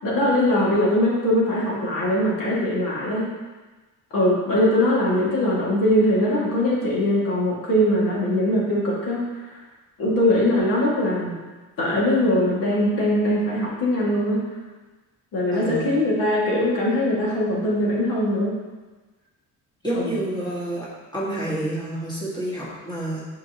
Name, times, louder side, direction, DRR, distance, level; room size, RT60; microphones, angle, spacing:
voice 1, 0.0-3.3 4.1-9.4 10.0-11.3 11.8-14.4 15.3-18.6 19.9-20.1, left 1 dB, 90° left, -6 dB, 2.2 m, -21 dB
voice 2, 15.5-15.9 19.8-20.9 21.1-23.2, right 1 dB, 15° left, -8 dB, 1.9 m, -28 dB
10.5 x 4.6 x 3.0 m, 1.2 s
cardioid pair, 165°, 32 cm